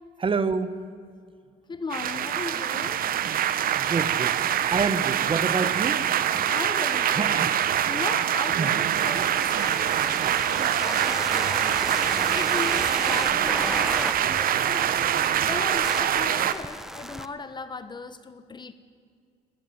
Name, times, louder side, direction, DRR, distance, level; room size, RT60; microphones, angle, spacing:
voice 1, 0.2-0.8 3.7-4.3 4.7-6.0 7.1-7.5 8.6-8.7, right 4 dB, 30° right, 13 dB, 1.7 m, -27 dB
voice 2, 1.7-3.0 6.5-7.4 7.8-15.1 15.5-18.7, left 4 dB, 25° left, 12 dB, 1.3 m, -37 dB
sound 1, 1.9-16.5, right 10 dB, 60° right, 1.4 m, -24 dB
sound 2, 8.9-17.3, equal, ahead, 1.1 m, -35 dB
24.5 x 18.5 x 9.0 m, 2.2 s
cardioid pair, 110°, 17 cm